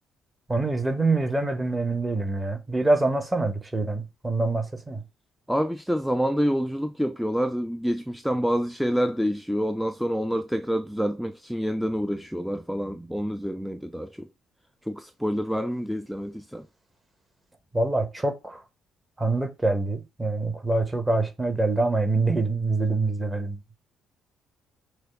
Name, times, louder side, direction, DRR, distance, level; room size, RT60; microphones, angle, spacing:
voice 1, 0.5-5.0 17.7-18.6 19.2-23.6, right 2 dB, 20° right, 1.2 m, -25 dB
voice 2, 5.5-14.3 14.9-16.7, equal, ahead, 0.4 m, -27 dB
6.3 x 2.3 x 3.6 m
figure-of-eight pair, 45°, 0 cm